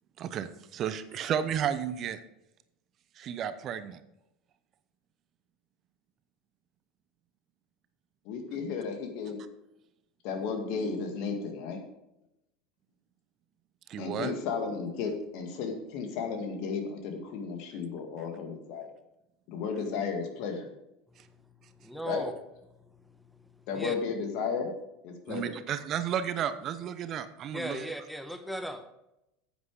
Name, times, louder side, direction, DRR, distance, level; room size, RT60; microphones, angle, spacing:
voice 1, 0.2-2.2 3.2-4.0 13.9-14.3 25.3-27.9, right 9 dB, 40° right, 12 dB, 0.7 m, -33 dB
voice 2, 8.3-9.4 10.2-11.8 14.0-18.9 19.5-20.7 22.1-22.2 23.7-24.7 25.0-25.6, left 5 dB, 55° left, 5 dB, 2.0 m, -34 dB
voice 3, 21.8-22.3 23.8-23.9 27.5-28.9, right 1 dB, ahead, 8 dB, 1.0 m, -36 dB
9.4 x 8.3 x 4.9 m, 0.87 s
hypercardioid pair, 80°, 0 cm